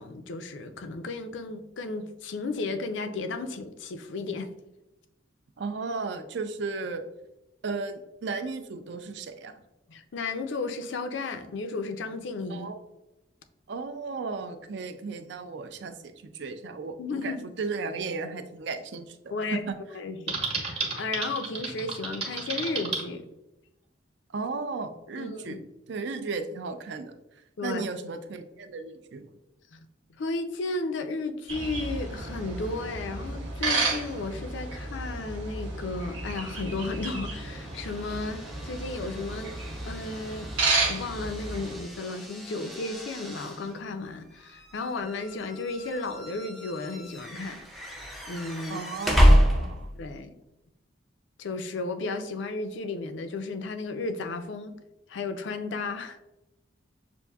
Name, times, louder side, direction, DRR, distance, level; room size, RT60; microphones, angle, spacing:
voice 1, 0.0-4.5 9.9-12.7 17.0-17.4 19.3-19.7 19.9-23.3 25.2-25.6 27.6-27.8 29.7-29.8 30.1-39.5 39.8-40.5 40.8-47.6 48.3-48.8 49.6-50.3 51.4-54.7 55.1-56.2, left 3 dB, 70° left, 8 dB, 0.4 m, -34 dB
voice 2, 5.6-7.0 7.6-9.5 12.5-12.8 13.7-19.2 19.5-19.8 24.3-25.6 25.9-27.1 27.6-29.3 48.7-49.9, right 4 dB, 65° right, 8 dB, 0.4 m, -35 dB
Typing, 20.3-23.0, right 4 dB, 30° right, 0.9 m, -32 dB
sound 1, 31.5-41.8, right 3 dB, 90° right, 1.0 m, -32 dB
sound 2, 37.3-50.1, equal, ahead, 0.4 m, -29 dB
6.8 x 2.5 x 2.3 m, 0.93 s
head